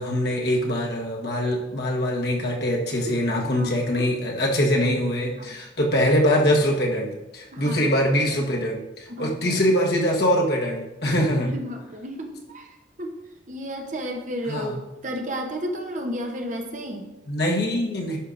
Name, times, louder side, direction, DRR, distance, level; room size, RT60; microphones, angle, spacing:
voice 1, 0.0-11.5 14.5-14.8 17.3-18.2, equal, 60° left, -1 dB, 1.3 m, -23 dB
voice 2, 7.5-7.8 9.1-9.5 11.4-12.7 13.0-13.2 13.5-17.1, equal, 40° right, 3 dB, 0.8 m, -32 dB
11.5 x 5.5 x 2.5 m, 1.0 s
head